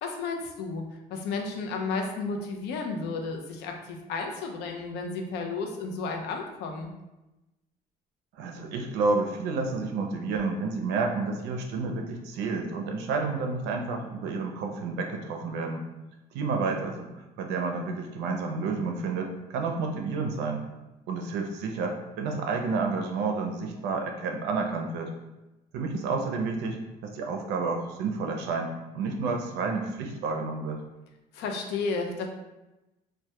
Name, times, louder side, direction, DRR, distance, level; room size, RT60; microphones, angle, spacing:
voice 1, 0.0-6.9 31.3-32.3, left 4 dB, 80° left, 2 dB, 0.4 m, -33 dB
voice 2, 8.4-15.8 16.3-20.6 21.1-25.1 25.7-30.8, right 4 dB, 90° right, 3 dB, 0.4 m, -30 dB
2.1 x 2.1 x 2.8 m, 1.0 s
cardioid pair, 110°, 17 cm